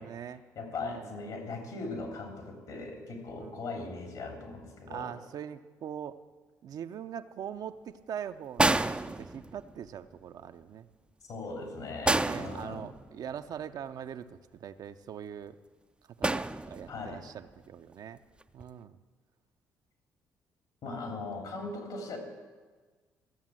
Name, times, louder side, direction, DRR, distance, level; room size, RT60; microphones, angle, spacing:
voice 1, 0.0-0.4 0.8-1.2 3.4-3.6 4.9-6.2 6.6-10.9 12.2-15.6 16.2-18.2 18.5-19.0 20.9-21.0, right 9 dB, 60° right, 9 dB, 0.6 m, -42 dB
voice 2, 0.5-5.1 11.3-12.8 16.9-17.2 20.8-22.2, left 3 dB, 70° left, 3 dB, 3.3 m, -39 dB
sound 1, 8.6-9.8 12.0-13.3 16.2-17.1 18.4-18.6, right 2 dB, 15° right, 0.5 m, -29 dB
14.5 x 7.1 x 7.6 m, 1.4 s
supercardioid pair, 65°, 7 cm